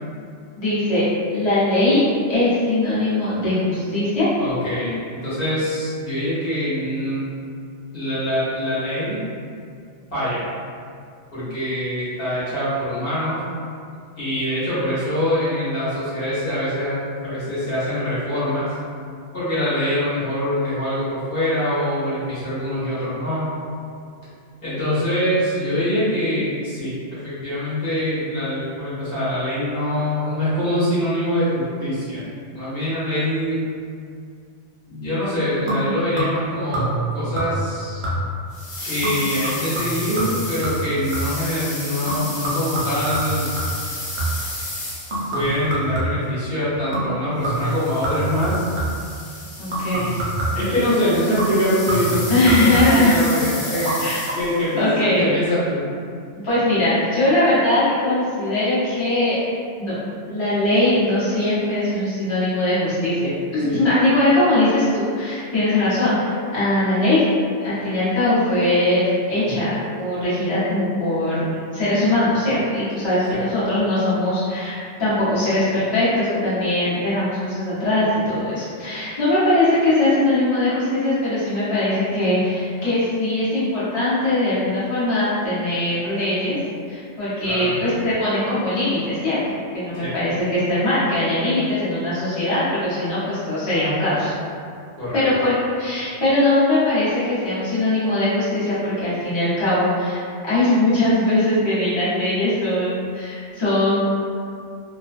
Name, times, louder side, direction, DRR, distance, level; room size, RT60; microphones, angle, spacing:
voice 1, 0.6-1.0 1.3-2.0 2.3-4.3 49.6-50.2 52.3-53.1 54.0-54.2 54.8-55.3 56.4-59.4 59.8-59.9 60.3-67.2 67.6-86.6 86.9-89.4 89.7-94.3 95.1-104.0, left 1 dB, 30° left, -12 dB, 0.7 m, -20 dB
voice 2, 4.4-7.2 7.9-9.3 10.1-10.4 11.3-13.4 14.2-18.7 19.3-23.6 24.6-26.9 27.2-33.6 34.9-38.0 38.8-43.5 45.3-48.7 50.5-53.9 54.3-55.9 63.6-63.8 73.3-73.4 87.4-87.7 89.9-90.1 94.9-95.3, equal, 55° left, -11 dB, 1.0 m, -24 dB
sound 1, 35.7-36.5 36.7-37.1 37.4-37.7 38.0-38.5 39.0-41.5 42.1-44.5 45.1-46.4 46.9-47.2 47.4-49.1 49.7-50.7 51.4-53.1 53.7-54.0 54.2-54.3, right 1 dB, 50° right, 0.6 m, -26 dB
sound 2, 38.5-45.5 47.4-54.7, left 2 dB, 80° left, 1.2 m, -33 dB
2.3 x 2.2 x 2.4 m, 2.3 s
omnidirectional pair, 1.2 m